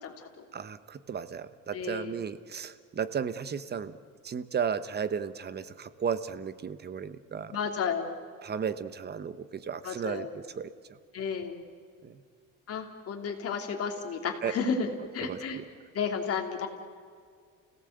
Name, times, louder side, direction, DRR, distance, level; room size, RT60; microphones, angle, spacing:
voice 1, 0.0-0.4 1.7-2.2 7.5-8.2 9.8-10.4 11.1-11.6 12.7-14.9 15.1-15.6 15.9-16.7, left 6 dB, 45° left, 3 dB, 3.1 m, -32 dB
voice 2, 0.5-4.0 4.2-7.6 8.4-10.7 12.0-12.2 14.4-14.5 15.2-15.6, right 7 dB, 30° right, 13 dB, 1.0 m, -34 dB
29.5 x 17.5 x 8.1 m, 2.1 s
cardioid pair, 140°, 32 cm